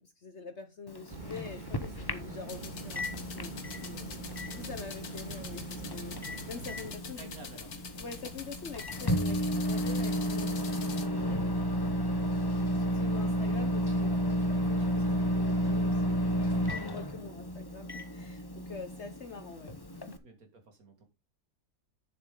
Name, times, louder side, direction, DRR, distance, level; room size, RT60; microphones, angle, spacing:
voice 1, 0.0-7.3 8.0-11.6 12.5-20.2, left 5 dB, 50° left, 8 dB, 1.2 m, -46 dB
Microwave oven, 0.9-20.2, equal, 20° left, 0.6 m, -32 dB
sound 1, 1.1-6.9, right 3 dB, 30° right, 2.1 m, -44 dB
sound 2, 2.5-11.1, left 5 dB, 65° left, 1.9 m, -45 dB
voice 2, 7.2-7.7 20.2-21.0, right 4 dB, 60° right, 5 dB, 2.7 m, -51 dB
9.6 x 7.2 x 3.8 m, 0.25 s
omnidirectional pair, 1.7 m